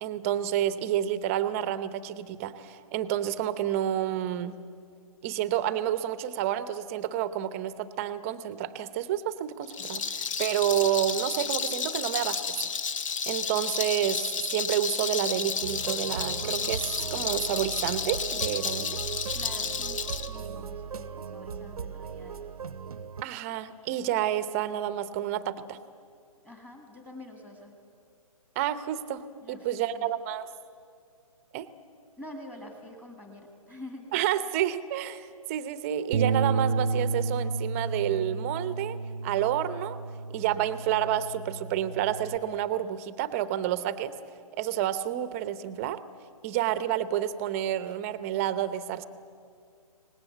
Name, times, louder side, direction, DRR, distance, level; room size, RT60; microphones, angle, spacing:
voice 1, 0.0-4.6 5.2-12.7 13.3-14.2 14.5-19.0 23.2-25.8 28.6-30.5 31.5-31.7 34.1-39.0 39.2-40.0 40.3-44.1 44.6-46.0 46.4-49.0, right 11 dB, 25° right, 14 dB, 0.8 m, -29 dB
Rattle, 9.6-20.3, left 6 dB, 60° left, 1.3 m, -32 dB
sound 1, 15.6-23.2, right 7 dB, 80° right, 0.8 m, -38 dB
voice 2, 19.3-20.0 20.3-22.5 26.4-27.7 29.4-30.1 32.2-34.1, left 1 dB, 10° left, 3 dB, 1.8 m, -46 dB
Bass guitar, 36.1-42.4, right 4 dB, 50° right, 0.6 m, -31 dB
25.0 x 19.5 x 8.0 m, 2.3 s
hypercardioid pair, 150°, 19 cm